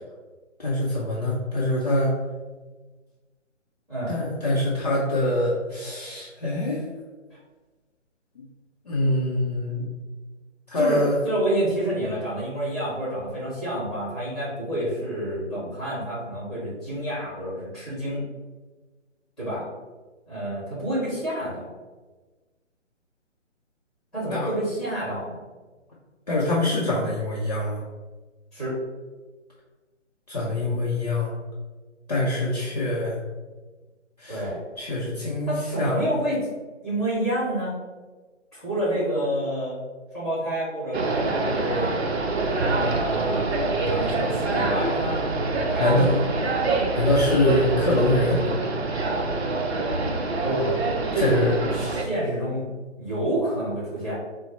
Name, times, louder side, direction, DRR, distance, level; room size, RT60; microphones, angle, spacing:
voice 1, 0.6-2.2 4.1-6.9 8.9-9.9 10.7-11.2 24.3-24.5 26.3-27.8 30.3-31.3 32.1-33.2 34.2-34.4 34.8-36.0 45.8-46.2 46.9-48.4 51.2-51.5, left 1 dB, 35° left, -6 dB, 0.5 m, -24 dB
voice 2, 10.7-18.2 19.4-19.6 20.3-21.7 24.1-25.4 28.5-28.8 34.3-34.6 35.5-36.4 36.8-37.7 38.5-39.8 40.1-41.9 42.7-45.3 45.7-46.5 50.4-50.8 51.1-52.7 53.0-54.1, right 1 dB, ahead, -9 dB, 1.2 m, -28 dB
sound 1, 40.9-52.0, right 3 dB, 60° right, 0.6 m, -26 dB
4.3 x 2.0 x 4.0 m, 1.3 s
figure-of-eight pair, 150°, 37 cm